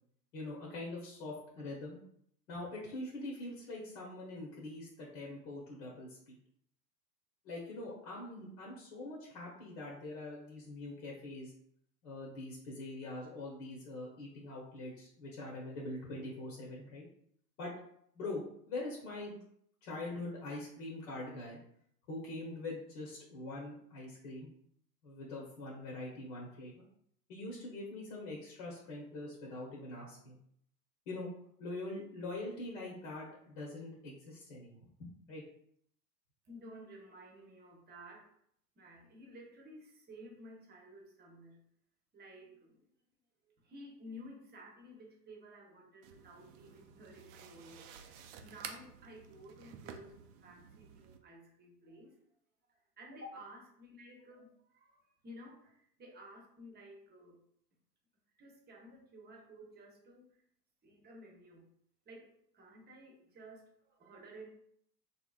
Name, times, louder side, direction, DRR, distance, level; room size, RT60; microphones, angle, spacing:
voice 1, 0.3-2.0 2.5-6.4 7.4-11.5 12.0-17.0 17.6-17.7 18.1-19.4 19.8-21.6 22.1-24.5 25.0-26.9 27.3-30.4 31.1-31.3 31.6-35.4, left 2 dB, 55° left, -3 dB, 1.2 m, -43 dB
voice 2, 36.5-38.3 38.8-41.6 42.1-42.9 43.5-52.2 53.0-57.4 58.4-60.3 60.8-61.7 62.1-64.5, equal, 20° right, 0 dB, 0.9 m, -53 dB
sound 1, 46.0-51.2, right 7 dB, 40° right, 0.4 m, -52 dB
3.8 x 3.0 x 2.4 m, 0.68 s
hypercardioid pair, 95°, 49 cm